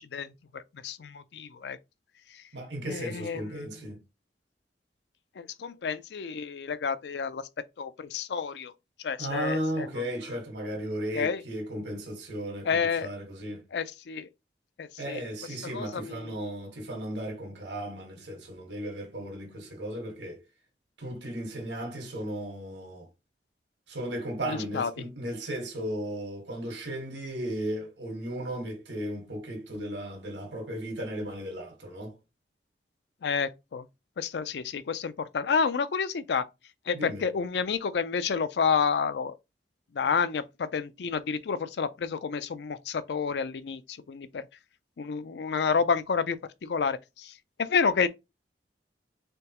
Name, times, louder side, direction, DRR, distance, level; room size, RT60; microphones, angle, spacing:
voice 1, 0.0-1.8 2.9-3.4 5.4-7.4 7.8-8.7 9.0-9.9 11.1-11.4 12.6-13.1 13.7-14.3 14.8-15.2 15.7-16.3 24.4-24.9 33.2-33.8 34.2-36.4 36.9-39.4 39.9-44.4 45.0-47.3 47.6-48.1, left 5 dB, 70° left, 0.4 m, -29 dB
voice 2, 2.5-4.0 9.2-13.6 15.0-20.4 21.0-23.1 23.9-32.1 36.9-37.2, right 1 dB, 90° right, 1.5 m, -35 dB
3.8 x 3.3 x 2.9 m
head